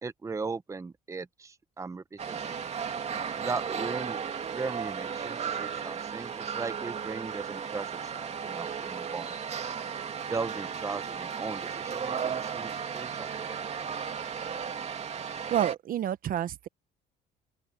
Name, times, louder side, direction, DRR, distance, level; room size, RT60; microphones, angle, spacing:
voice 1, 0.0-2.6 3.3-4.2 4.5-9.4 10.3-13.6, right 4 dB, 20° right, 0.9 m, -38 dB
sound 1, 2.2-15.8, right 7 dB, 40° right, 2.6 m, -35 dB
voice 2, 15.5-16.7, right 11 dB, 55° right, 1.0 m, -29 dB
open air
cardioid pair, 110°, 17 cm